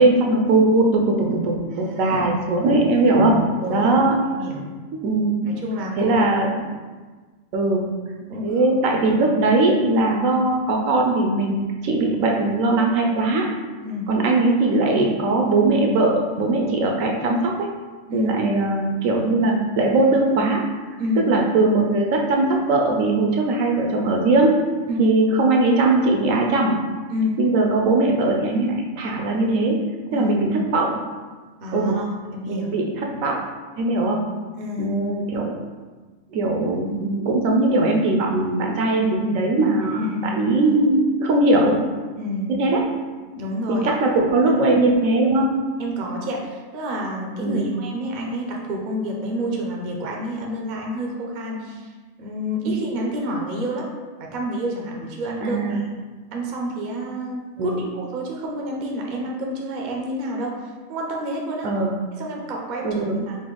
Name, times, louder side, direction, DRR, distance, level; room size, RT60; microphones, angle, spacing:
voice 1, 0.0-3.4 3.7-4.2 4.9-5.6 6.0-6.6 7.5-7.9 8.4-13.5 14.1-17.7 18.1-20.6 21.2-24.6 25.0-26.7 27.4-29.8 30.1-31.0 31.7-32.0 32.5-33.4 33.8-34.3 34.8-35.6 36.3-40.0 40.3-41.8 42.5-42.9 43.7-45.6 47.4-47.7 55.4-55.8 57.6-57.8 61.6-62.0 62.8-63.2, right 2 dB, 70° right, 1 dB, 0.9 m, -20 dB
voice 2, 1.8-2.2 3.6-3.9 4.3-4.7 5.6-6.2 8.3-8.5 13.8-14.1 18.1-18.3 21.0-21.3 24.9-25.1 27.1-27.4 30.1-30.4 31.6-32.0 32.3-32.7 34.6-34.9 39.8-40.4 42.2-42.5 43.4-43.9 44.4-44.5 45.8-51.9 52.2-53.9 54.2-55.8 56.3-60.5 60.9-61.7 62.2-63.4, equal, 50° right, -1 dB, 0.6 m, -29 dB
4.2 x 2.6 x 3.8 m, 1.4 s
omnidirectional pair, 1.5 m